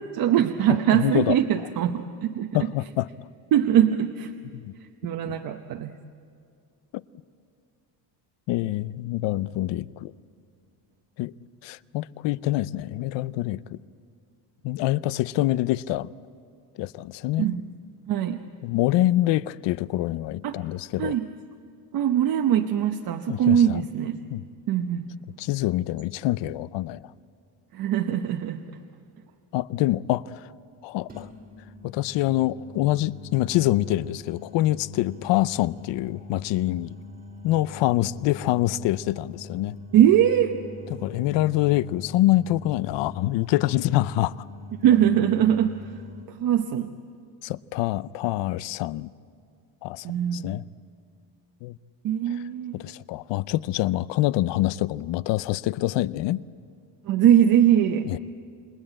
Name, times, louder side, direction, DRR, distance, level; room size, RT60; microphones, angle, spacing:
voice 1, 0.1-2.6 3.5-4.3 5.0-5.9 17.4-17.6 18.1-18.4 20.4-20.6 21.0-21.3 21.9-24.2 24.7-25.1 27.7-28.6 39.9-40.5 44.8-45.9 46.4-46.9 50.0-50.5 52.0-52.8 57.0-58.1, right 10 dB, 55° right, 0.9 m, -21 dB
voice 2, 0.9-1.4 2.5-3.1 4.6-4.7 5.3-5.4 8.5-10.1 11.2-11.3 11.6-13.8 14.6-16.1 16.8-17.5 18.6-21.1 23.3-23.9 24.3-24.5 25.4-27.0 29.5-30.5 30.8-31.3 31.8-36.9 37.4-39.7 40.9-44.4 47.4-49.1 49.8-50.1 50.3-50.6 51.6-51.8 52.7-56.4 58.0-58.2, left 16 dB, 85° left, 0.7 m, -25 dB
sound 1, 28.3-28.5 31.1-46.2, left 2 dB, 20° right, 1.9 m, -43 dB
28.0 x 21.5 x 8.8 m
cardioid pair, 175°, 42 cm